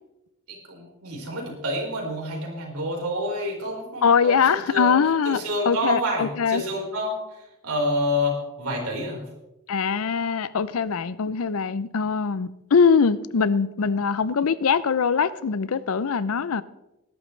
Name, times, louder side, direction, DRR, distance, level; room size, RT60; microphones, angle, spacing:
voice 1, 0.5-4.9 5.2-9.2, left 1 dB, 80° right, -1 dB, 4.5 m, -28 dB
voice 2, 4.0-6.6 9.7-16.6, left 6 dB, 65° left, 17 dB, 0.5 m, -22 dB
19.0 x 11.5 x 3.3 m, 0.94 s
head